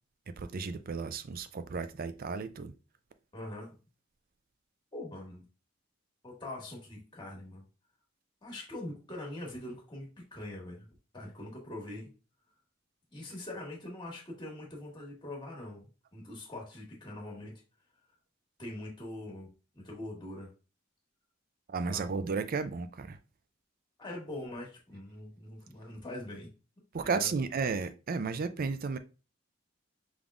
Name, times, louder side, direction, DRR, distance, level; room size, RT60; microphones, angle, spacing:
voice 1, 0.4-2.7 21.7-23.2 26.9-29.0, right 4 dB, 45° right, 0.4 m, -33 dB
voice 2, 3.3-3.8 4.9-5.4 6.2-7.6 8.4-10.9 11.1-12.1 13.1-17.6 18.6-19.5 19.7-20.5 21.9-22.1 24.0-26.5 26.9-27.3, left 1 dB, 25° left, 1.6 m, -43 dB
5.3 x 3.6 x 2.4 m
head